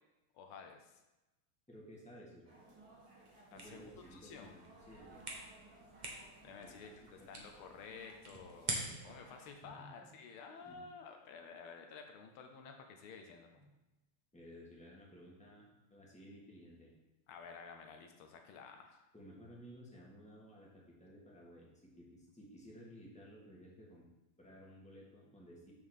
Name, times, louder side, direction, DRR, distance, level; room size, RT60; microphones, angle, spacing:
voice 1, 0.3-1.0 3.5-4.5 6.0-13.6 17.3-19.0, left 5 dB, 75° left, 4 dB, 1.6 m, -52 dB
voice 2, 1.7-2.5 3.5-5.2 6.6-7.3 9.8-10.1 10.6-10.8 13.5-13.7 14.3-16.9 19.1-24.1 24.4-25.7, equal, 5° left, -4 dB, 1.2 m, -56 dB
sound 1, 2.4-9.5, right 2 dB, 85° right, 2.8 m, -61 dB
sound 2, 3.5-9.2, right 2 dB, 30° right, 0.8 m, -46 dB
6.9 x 3.8 x 6.4 m, 1.0 s
omnidirectional pair, 2.4 m